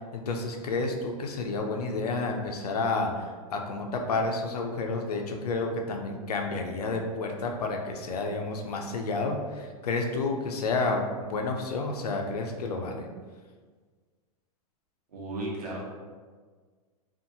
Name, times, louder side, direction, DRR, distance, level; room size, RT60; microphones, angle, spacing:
voice 1, 0.1-13.1, left 3 dB, 85° left, 3 dB, 0.5 m, -30 dB
voice 2, 15.1-15.8, right 1 dB, 85° right, -4 dB, 0.9 m, -34 dB
2.6 x 2.4 x 2.7 m, 1.5 s
hypercardioid pair, 120°, 19 cm